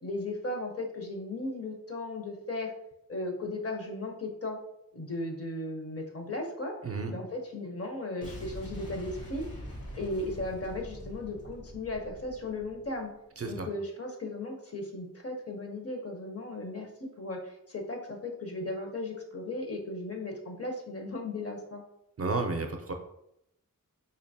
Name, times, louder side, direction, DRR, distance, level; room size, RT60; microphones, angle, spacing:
voice 1, 0.0-2.7 3.1-4.6 4.9-6.8 7.1-9.4 9.9-13.1 13.5-21.8, left 2 dB, 45° left, 3 dB, 0.8 m, -36 dB
Boom, 8.2-13.1, equal, 90° left, 1.0 m, -44 dB
voice 2, 13.4-13.7 22.2-22.9, right 3 dB, 45° right, 4 dB, 0.5 m, -32 dB
4.4 x 2.8 x 2.7 m, 0.80 s
wide cardioid pair, 70°, 34 cm